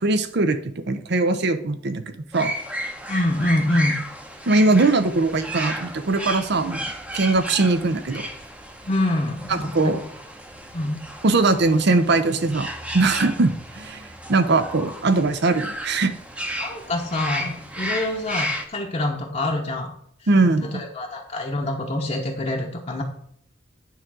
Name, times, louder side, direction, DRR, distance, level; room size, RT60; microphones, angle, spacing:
voice 1, 0.0-2.5 4.5-8.3 9.5-10.0 11.2-12.7 12.9-16.1 20.3-20.8, right 3 dB, 60° right, 10 dB, 0.7 m, -21 dB
sound 1, 2.3-18.7, equal, 5° right, 0.8 m, -33 dB
voice 2, 3.1-3.9 8.8-9.9 10.7-11.0 16.6-19.9 20.6-23.0, left 1 dB, 35° left, 0 dB, 0.9 m, -25 dB
9.4 x 3.7 x 6.1 m, 0.68 s
head